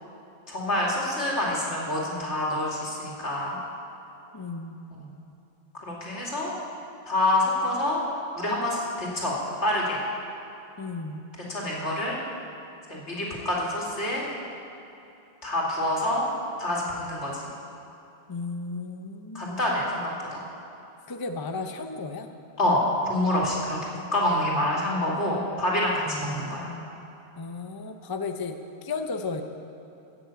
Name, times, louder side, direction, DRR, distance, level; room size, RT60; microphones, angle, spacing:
voice 1, 0.5-3.6 4.9-5.1 5.7-6.5 7.1-8.0 8.3-10.0 11.5-12.2 12.9-14.3 15.4-16.3 16.6-17.5 19.3-20.4 22.6-26.7, left 1 dB, 80° left, -4 dB, 3.0 m, -27 dB
voice 2, 4.3-4.8 10.8-11.2 18.3-19.5 21.1-22.3 26.0-26.9 27.4-29.4, left 4 dB, 25° left, 6 dB, 0.6 m, -34 dB
15.5 x 7.1 x 8.5 m, 2.8 s
omnidirectional pair, 1.1 m